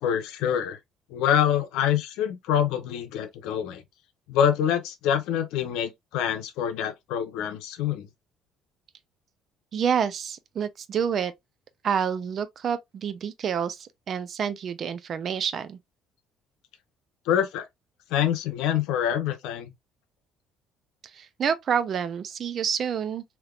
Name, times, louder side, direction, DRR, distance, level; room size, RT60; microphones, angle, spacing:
voice 1, 0.0-0.8 1.1-3.8 4.3-8.1 17.3-17.6 18.1-19.7, left 9 dB, 90° left, 0.8 m, -26 dB
voice 2, 9.7-11.3 11.8-15.8 21.1-23.2, right 7 dB, 40° right, 0.5 m, -28 dB
3.3 x 2.8 x 2.4 m
cardioid pair, 140°, 0 cm